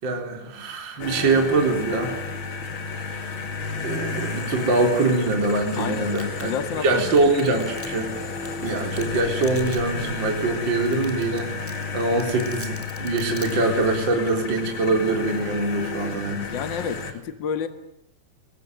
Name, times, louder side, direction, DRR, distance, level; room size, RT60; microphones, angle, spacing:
voice 1, 0.0-2.1 3.0-3.1 3.8-8.1 8.6-16.5, right 2 dB, 25° right, 3 dB, 3.9 m, -23 dB
sound 1, 1.0-17.1, left 4 dB, 35° left, 2.2 m, -32 dB
voice 2, 5.8-7.1 16.5-17.7, left 7 dB, 60° left, 9 dB, 1.2 m, -30 dB
Domestic sounds home sounds, 6.1-6.5 7.2-8.1 8.4-8.5 9.0-9.1 9.4-9.8 10.1-10.2 10.6-10.7 10.9-11.4 11.7-13.5, left 1 dB, 5° left, 1.8 m, -40 dB
25.5 x 23.0 x 9.3 m, 0.79 s
omnidirectional pair, 5.3 m